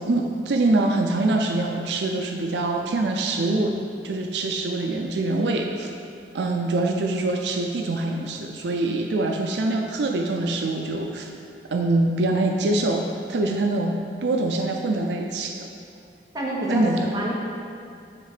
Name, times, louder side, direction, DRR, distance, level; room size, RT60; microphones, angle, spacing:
voice 1, 0.0-3.7 4.0-5.9 6.3-11.3 11.7-15.7 16.7-17.1, right 2 dB, 75° right, 2 dB, 0.5 m, -24 dB
voice 2, 16.3-17.3, right 1 dB, 20° right, -5 dB, 1.2 m, -26 dB
9.6 x 3.3 x 4.9 m, 2.4 s
head